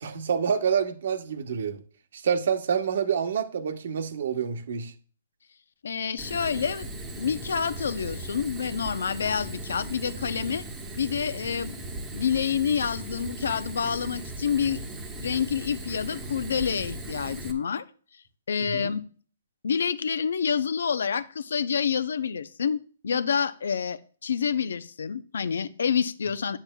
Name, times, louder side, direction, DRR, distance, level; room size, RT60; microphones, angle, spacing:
voice 1, 0.0-1.8 2.1-4.9 18.6-18.9, right 7 dB, 60° right, 1.2 m, -27 dB
voice 2, 5.8-6.9 7.2-10.7 11.0-11.8 12.1-14.8 15.2-17.8 18.5-19.0 19.6-26.6, left 7 dB, 80° left, 0.6 m, -28 dB
Fire, 6.2-17.5, right 1 dB, 10° right, 1.1 m, -38 dB
9.8 x 8.7 x 2.3 m
hypercardioid pair, 170°, 0 cm